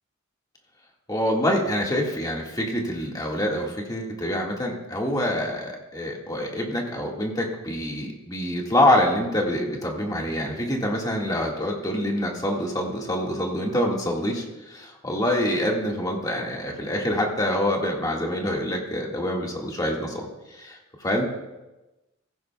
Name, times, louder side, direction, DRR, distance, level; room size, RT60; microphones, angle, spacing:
voice 1, 1.1-21.3, left 1 dB, 20° left, -1 dB, 1.8 m, -26 dB
16.5 x 15.0 x 2.3 m, 1.0 s
head